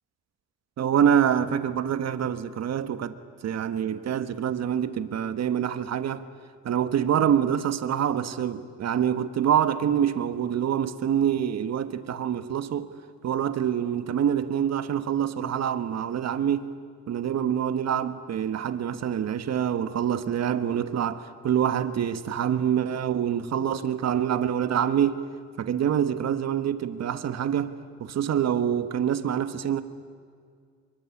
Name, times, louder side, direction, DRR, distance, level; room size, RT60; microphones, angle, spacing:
voice 1, 0.8-3.2 3.4-6.2 6.6-12.9 13.2-16.7 17.1-25.2 25.6-27.7 28.0-29.8, right 9 dB, 60° right, 1.4 m, -26 dB
24.5 x 23.0 x 9.9 m
cardioid pair, 90°, 30 cm